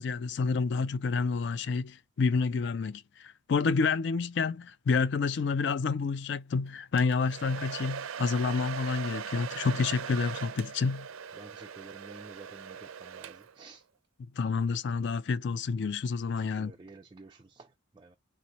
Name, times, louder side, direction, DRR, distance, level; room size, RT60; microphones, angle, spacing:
voice 1, 0.0-11.1 14.4-16.7, left 4 dB, 55° left, 0.4 m, -29 dB
Domestic sounds home sounds, 7.0-13.7, right 7 dB, 90° right, 0.4 m, -40 dB
voice 2, 11.3-13.9 16.3-18.2, right 3 dB, 20° right, 0.3 m, -51 dB
3.6 x 3.1 x 4.0 m
head